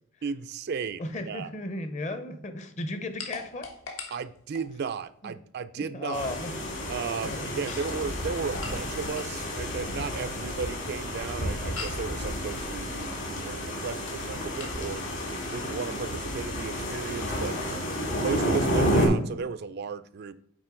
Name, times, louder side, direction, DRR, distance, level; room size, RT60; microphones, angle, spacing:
voice 1, 0.2-1.5 4.1-6.3 6.9-15.0 15.5-17.6 18.2-20.4, right 5 dB, 50° right, 11 dB, 0.3 m, -35 dB
voice 2, 1.0-3.7 5.2-5.3 5.8-6.5 7.2-7.8, left 1 dB, 35° left, 9 dB, 0.7 m, -35 dB
sound 1, 3.2-5.0 7.4-9.4 11.7-12.1 14.6-14.8, left 4 dB, 80° left, 1.3 m, -41 dB
sound 2, 6.1-19.1, equal, 60° left, 2.2 m, -31 dB
8.8 x 3.7 x 3.7 m, 0.69 s
head